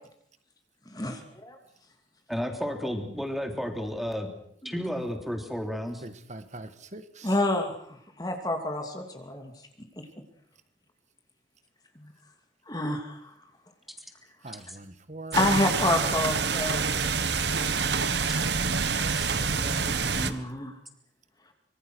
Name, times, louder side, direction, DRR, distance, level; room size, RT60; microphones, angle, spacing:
voice 1, 2.3-4.3 4.6-6.0 19.1-19.3, equal, ahead, 4 dB, 3.4 m, -32 dB
voice 2, 6.0-7.4 14.4-15.5 19.4-19.9, right 2 dB, 40° right, 10 dB, 1.8 m, -42 dB
voice 3, 7.2-9.5 9.8-10.1 12.0-12.1 12.7-13.3 15.3-16.8 19.0-20.8, left 1 dB, 20° left, 4 dB, 2.7 m, -29 dB
sound 1, 15.3-20.3, right 5 dB, 70° right, 1.6 m, -27 dB
25.5 x 24.5 x 6.4 m, 0.69 s
head